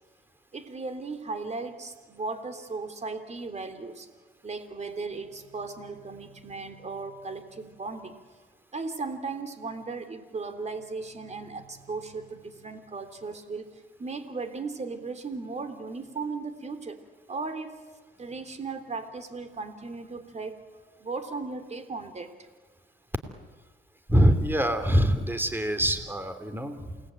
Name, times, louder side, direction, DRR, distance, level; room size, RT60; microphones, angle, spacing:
voice 1, 0.5-4.1 4.4-8.2 8.7-13.7 14.0-17.0 17.3-17.8 18.2-20.6 21.0-22.4, right 4 dB, 35° right, 8 dB, 3.3 m, -36 dB
voice 2, 24.1-27.0, equal, 10° right, 9 dB, 3.0 m, -24 dB
28.5 x 19.5 x 9.0 m, 1.3 s
cardioid pair, 90°, 20 cm